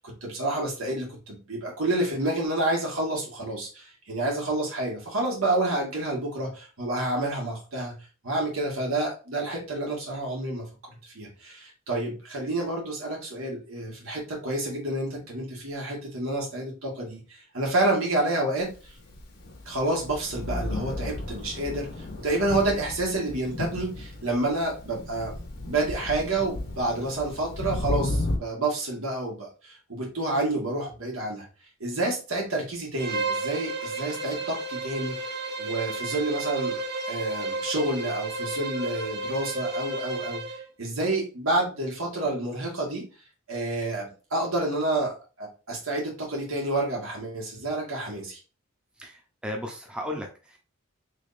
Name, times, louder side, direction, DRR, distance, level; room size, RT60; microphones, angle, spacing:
voice 1, 0.0-8.0 8.2-18.7 19.6-25.3 25.7-31.5 31.8-36.8 37.1-43.1 43.5-48.4, right 2 dB, 90° right, -2 dB, 1.5 m, -29 dB
Thunder, 18.8-28.4, left 1 dB, 50° left, 0.7 m, -34 dB
Bowed string instrument, 33.0-40.7, right 3 dB, 55° right, 0.7 m, -32 dB
voice 2, 49.0-50.6, left 1 dB, 5° right, 1 dB, 0.6 m, -35 dB
3.5 x 3.4 x 2.6 m, 0.35 s
head